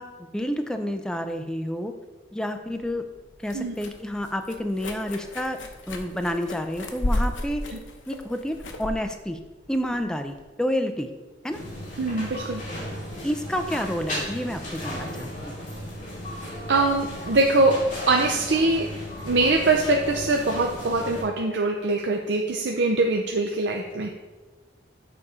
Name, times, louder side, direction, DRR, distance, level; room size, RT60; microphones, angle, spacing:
voice 1, 0.0-1.9 2.3-3.0 3.4-5.6 5.9-7.7 8.1-9.4 9.7-11.1 11.4-11.6 13.2-15.5, equal, 5° left, 6 dB, 0.4 m, -29 dB
sound 1, 2.7-10.4, left 1 dB, 90° left, 0.8 m, -33 dB
sound 2, 11.5-21.2, equal, 40° left, 2.3 m, -35 dB
voice 2, 12.0-12.6 16.7-17.8 18.0-18.9 19.2-24.1, right 2 dB, 70° right, 1 dB, 0.6 m, -23 dB
6.9 x 4.2 x 4.9 m, 1.2 s
head